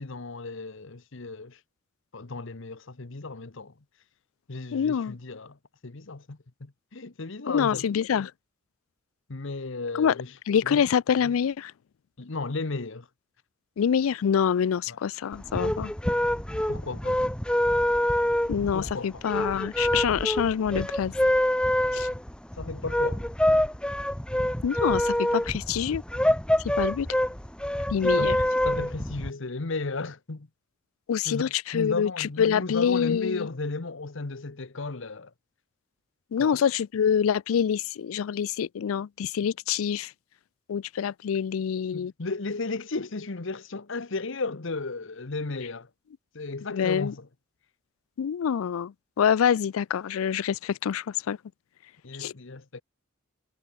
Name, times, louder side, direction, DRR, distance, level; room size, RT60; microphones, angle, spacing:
voice 1, 0.0-1.6 2.1-3.7 4.5-5.6 5.8-7.8 9.3-10.3 10.6-10.8 12.2-13.1 14.9-15.0 16.5-17.2 18.7-19.1 22.6-23.2 28.0-28.4 28.6-30.5 31.2-35.3 36.4-36.6 41.9-45.9 46.3-47.3 52.0-52.8, left 3 dB, 65° left, 1.1 m, -34 dB
voice 2, 4.7-5.2 7.5-8.3 9.9-11.7 13.8-15.9 18.5-21.1 21.9-22.1 24.6-26.0 26.8-27.1 27.9-28.4 31.1-33.5 36.3-40.1 40.7-42.1 46.7-47.1 48.2-51.4 52.2-52.3, left 8 dB, 85° left, 0.4 m, -26 dB
sound 1, 15.3-29.3, left 1 dB, 5° left, 0.9 m, -26 dB
head